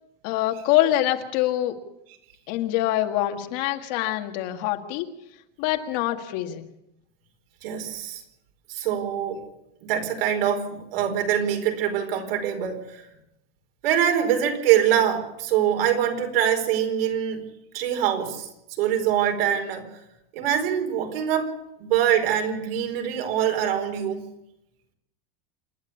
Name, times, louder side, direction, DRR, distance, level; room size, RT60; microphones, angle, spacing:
voice 1, 0.2-1.8 2.5-5.1 5.6-6.7, left 14 dB, 50° left, 4 dB, 1.9 m, -25 dB
voice 2, 7.6-8.2 8.7-9.4 9.8-13.1 13.8-17.4 17.7-19.9 20.3-21.5 21.8-24.3, right 9 dB, 80° right, 4 dB, 4.6 m, -24 dB
28.0 x 11.0 x 8.5 m, 0.85 s
supercardioid pair, 175°, 29 cm